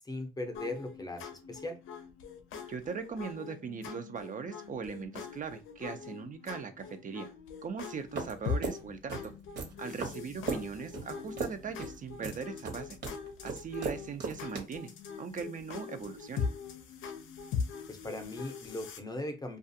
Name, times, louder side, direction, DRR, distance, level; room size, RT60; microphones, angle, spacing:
voice 1, 0.0-1.8 10.5-10.6 17.9-19.6, left 2 dB, 20° left, 6 dB, 0.6 m, -39 dB
sound 1, 0.5-19.0, left 6 dB, 80° left, 0.5 m, -42 dB
voice 2, 2.7-7.3 7.6-9.3 9.8-13.0 13.4-14.9 15.2-16.5, right 6 dB, 40° right, 7 dB, 0.4 m, -40 dB
sound 2, 8.2-14.6, right 4 dB, 60° right, 1.0 m, -38 dB
2.4 x 2.3 x 2.7 m, 0.31 s
cardioid pair, 90°, 20 cm